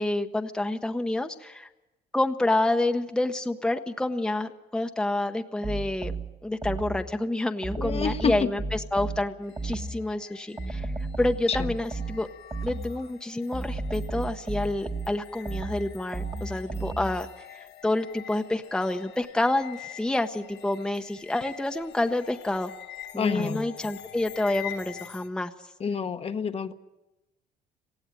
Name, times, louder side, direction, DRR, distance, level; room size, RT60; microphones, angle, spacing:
voice 1, 0.0-1.7 2.1-6.1 6.4-10.9 11.2-12.3 12.6-17.3 17.8-22.7 23.1-25.5, left 2 dB, 5° left, 6 dB, 0.8 m, -28 dB
sound 1, 5.6-7.2 7.6-10.1 10.6-13.1 13.5-17.3, right 3 dB, 20° right, 1.3 m, -34 dB
voice 2, 7.8-8.5 11.5-11.7 23.1-23.7 25.8-26.7, left 6 dB, 35° left, 8 dB, 1.0 m, -28 dB
sound 2, 9.4-25.3, left 11 dB, 85° left, 1.3 m, -46 dB
18.5 x 15.5 x 9.1 m, 1.0 s
cardioid pair, 110°, 17 cm